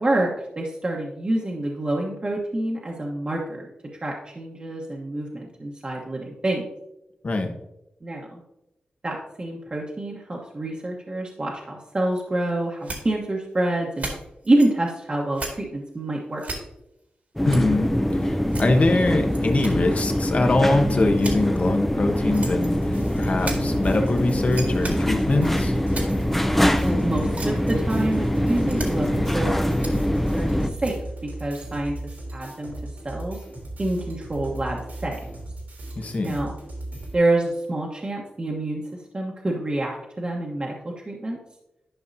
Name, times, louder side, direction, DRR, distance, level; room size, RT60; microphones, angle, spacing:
voice 1, 0.0-3.7 4.0-6.7 8.0-8.4 9.0-14.1 14.4-16.4 26.8-31.9 32.3-32.7 33.0-33.4 33.8-35.2 36.2-36.5 37.1-41.4, right 1 dB, 35° right, -2 dB, 1.2 m, -27 dB
sound 1, 12.1-12.2 12.8-13.0 13.5-13.6 13.9-14.9 15.3-15.5 15.9-16.0 16.4-16.6 17.5-17.6 17.9-18.0 18.5-18.9 19.3-19.9 20.2-20.3 20.6-20.7 21.0-21.7 22.3-22.8 23.2-23.6 24.5-24.9 25.5-26.2 26.8-26.9 27.1-27.8 28.1-28.3 28.6-29.3 29.8-29.9 30.8-30.9, right 2 dB, 60° right, 1.9 m, -35 dB
sound 2, 17.4-30.7, equal, 5° left, 0.6 m, -24 dB
voice 2, 17.5-25.7 36.0-36.3, left 2 dB, 50° left, 4 dB, 1.1 m, -23 dB
sound 3, 22.7-37.1, right 1 dB, 90° right, 2.8 m, -37 dB
11.5 x 5.4 x 2.7 m, 0.88 s
cardioid pair, 65°, 3 cm